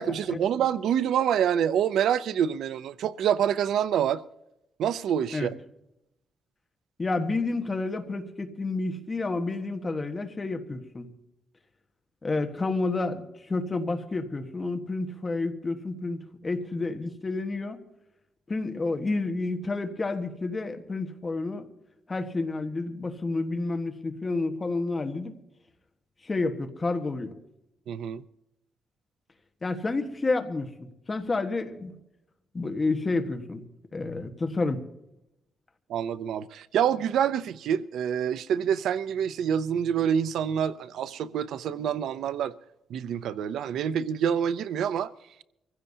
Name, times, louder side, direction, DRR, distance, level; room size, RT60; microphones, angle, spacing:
voice 1, 0.0-4.2 4.8-5.5 27.9-28.2 35.9-42.5 42.9-45.1, right 9 dB, 80° right, 0.5 m, -26 dB
voice 2, 7.0-11.1 12.2-17.8 18.5-21.7 22.1-25.3 26.2-27.3 29.6-31.9 32.5-33.6 33.9-34.8, left 3 dB, 25° left, 1.3 m, -30 dB
24.5 x 15.5 x 2.8 m
cardioid pair, 150°, 0 cm